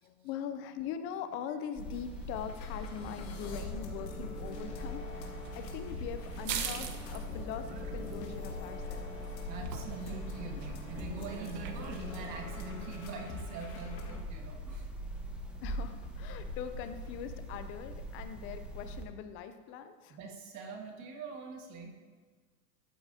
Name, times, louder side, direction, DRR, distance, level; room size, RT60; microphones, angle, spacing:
voice 1, 0.0-9.4 15.6-20.2, left 8 dB, 25° left, 10 dB, 0.4 m, -42 dB
sound 1, 1.8-19.0, equal, ahead, 0.9 m, -42 dB
sound 2, 1.9-2.0 2.3-14.2, left 3 dB, 80° left, 1.9 m, -46 dB
sound 3, 5.1-12.6, right 8 dB, 85° right, 1.1 m, -44 dB
voice 2, 9.5-14.9 20.1-21.9, right 3 dB, 35° right, 2 dB, 1.6 m, -43 dB
13.0 x 7.9 x 2.7 m, 1.4 s
hypercardioid pair, 120°, 49 cm